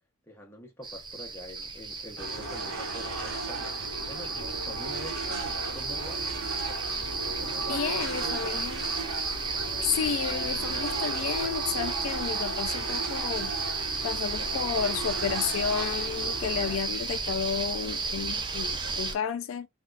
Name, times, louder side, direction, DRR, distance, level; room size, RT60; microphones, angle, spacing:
voice 1, 0.2-6.4 7.2-8.6, equal, 10° left, 0.8 m, -45 dB
sound 1, 0.8-19.1, right 4 dB, 20° right, 0.4 m, -33 dB
sound 2, 2.2-16.8, right 3 dB, 65° right, 1.1 m, -37 dB
voice 2, 7.7-8.8 9.8-13.5 14.0-19.7, left 7 dB, 70° left, 0.3 m, -32 dB
3.4 x 2.4 x 2.3 m
head